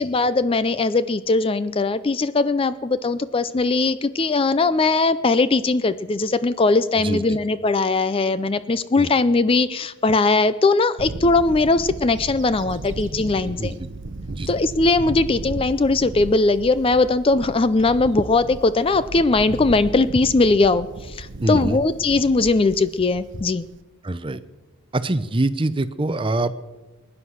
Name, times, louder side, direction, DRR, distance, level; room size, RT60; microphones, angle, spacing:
voice 1, 0.0-13.7 14.5-23.7, left 3 dB, 25° left, 14 dB, 0.4 m, -20 dB
Bird / Wind, 11.0-23.8, right 2 dB, 60° right, 0.8 m, -35 dB
voice 2, 21.4-21.8 24.0-24.4 24.9-26.6, right 2 dB, 25° right, 13 dB, 0.6 m, -24 dB
21.5 x 9.9 x 6.3 m, 1.1 s
head